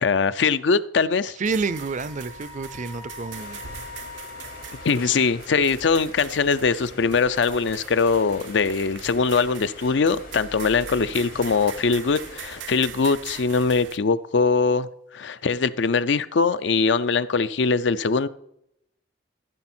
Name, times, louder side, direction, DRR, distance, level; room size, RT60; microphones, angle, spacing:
voice 1, 0.0-1.4 4.8-14.9 15.1-18.3, left 4 dB, 70° left, 0.5 m, -22 dB
voice 2, 1.4-3.6 5.0-5.3, right 4 dB, 40° right, 0.5 m, -29 dB
sound 1, 1.4-14.0, right 7 dB, 85° right, 0.8 m, -42 dB
Wind instrument woodwind instrument, 1.6-5.5, left 5 dB, 25° left, 0.6 m, -43 dB
sound 2, 3.3-12.7, left 4 dB, 55° left, 1.0 m, -45 dB
14.5 x 6.3 x 4.4 m
head